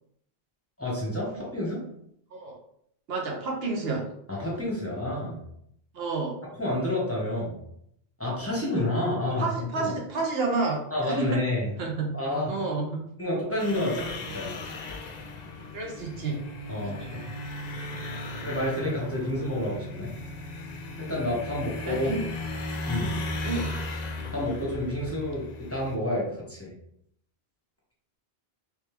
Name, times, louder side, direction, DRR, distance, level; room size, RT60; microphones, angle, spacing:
voice 1, 0.8-1.8 4.3-5.4 6.6-7.6 8.2-9.9 10.9-11.7 12.1-12.5 13.2-14.6 16.7-17.2 18.4-20.1 21.0-22.1 22.9-23.2 24.3-26.7, left 1 dB, 15° left, -6 dB, 1.1 m, -29 dB
voice 2, 3.1-4.1 5.9-6.4 9.4-11.4 11.8-12.2 12.5-13.0 15.7-16.4 17.0-17.1 21.9-22.2 23.4-23.8, right 3 dB, 70° right, 0 dB, 1.0 m, -30 dB
sound 1, 13.6-26.0, left 2 dB, 55° left, 0.5 m, -36 dB
3.3 x 3.1 x 3.3 m, 0.71 s
omnidirectional pair, 1.1 m